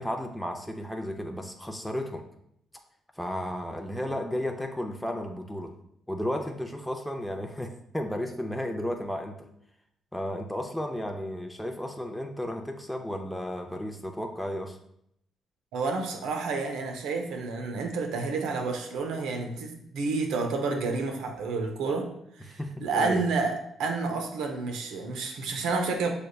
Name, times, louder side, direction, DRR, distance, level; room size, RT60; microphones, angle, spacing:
voice 1, 0.0-2.2 3.2-5.7 6.1-9.5 10.1-14.8 22.5-23.2, left 1 dB, ahead, 2 dB, 0.5 m, -33 dB
voice 2, 15.7-22.1 22.5-26.1, right 4 dB, 85° right, 4 dB, 0.7 m, -30 dB
6.3 x 3.4 x 2.3 m, 0.73 s
cardioid pair, 90°, 0 cm